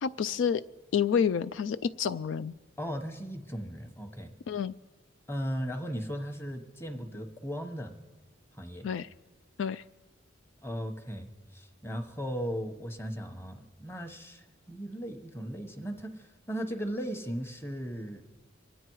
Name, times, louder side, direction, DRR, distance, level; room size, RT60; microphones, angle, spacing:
voice 1, 0.0-0.6 0.9-2.5 4.5-4.7 8.8-9.1 9.6-9.8, left 7 dB, 75° left, 13 dB, 0.3 m, -29 dB
voice 2, 2.8-4.3 5.3-8.0 8.6-8.9 10.6-18.2, equal, 15° left, 6 dB, 1.1 m, -37 dB
24.5 x 9.2 x 4.7 m, 1.2 s
head